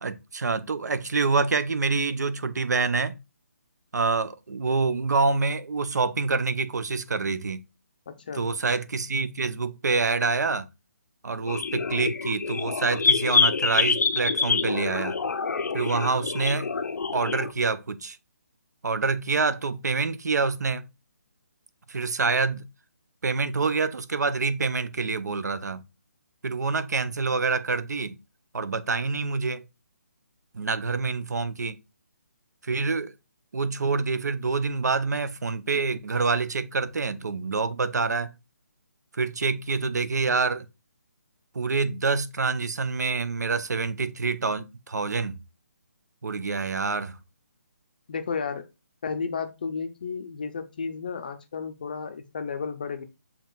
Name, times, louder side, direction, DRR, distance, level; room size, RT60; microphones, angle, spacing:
voice 1, 0.0-3.2 3.9-7.6 8.3-10.7 11.2-15.2 15.7-16.7 17.1-18.2 18.8-20.8 21.9-22.7 23.2-25.8 26.4-28.2 28.5-29.6 30.5-31.8 32.6-33.1 33.5-38.3 39.1-40.7 41.5-45.4 46.2-47.2, right 4 dB, 80° right, 0.6 m, -26 dB
voice 2, 8.1-8.5 48.1-48.6 49.0-53.0, left 5 dB, 30° left, 0.5 m, -33 dB
sound 1, 11.5-17.5, left 5 dB, 80° left, 0.5 m, -26 dB
7.4 x 2.9 x 2.3 m
hypercardioid pair, 170°, 9 cm